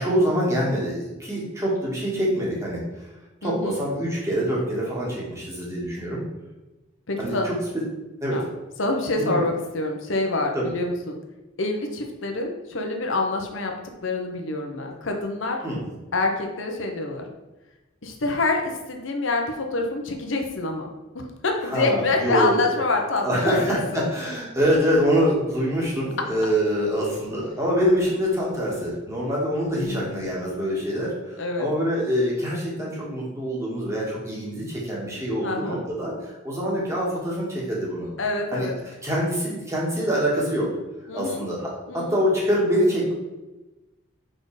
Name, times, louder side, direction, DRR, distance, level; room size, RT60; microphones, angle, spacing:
voice 1, 0.0-2.8 3.4-6.2 7.2-7.5 8.2-8.4 9.2-9.4 10.5-10.7 15.6-15.8 21.6-22.6 23.2-38.1 38.5-38.7 39.0-40.7 41.1-43.1, equal, 15° right, -5 dB, 1.9 m, -25 dB
voice 2, 3.4-3.8 7.1-7.5 8.3-8.5 8.8-11.2 11.6-13.8 14.0-15.7 16.1-17.3 18.0-20.9 21.1-24.0 29.8-30.2 31.4-31.7 35.4-35.9 38.2-38.8 41.1-41.5 41.9-42.2, left 3 dB, 75° left, 3 dB, 0.9 m, -26 dB
5.0 x 4.4 x 4.9 m, 1.1 s
head